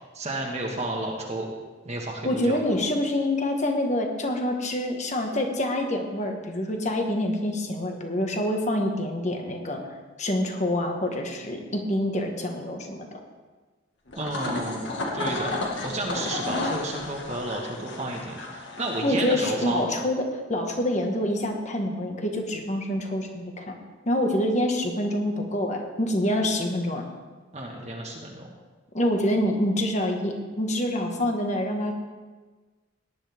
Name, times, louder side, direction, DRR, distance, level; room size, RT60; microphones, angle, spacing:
voice 1, 0.1-1.5 1.8-2.6 14.2-14.9 15.1-20.0 27.5-28.5, right 1 dB, 35° right, -1 dB, 1.6 m, -32 dB
voice 2, 2.2-9.8 10.2-13.1 19.0-23.7 24.0-27.0 28.9-31.9, left 1 dB, 40° left, 3 dB, 1.6 m, -26 dB
sound 1, 14.1-19.9, left 2 dB, 65° left, 1.9 m, -33 dB
18.0 x 10.5 x 3.6 m, 1.3 s
head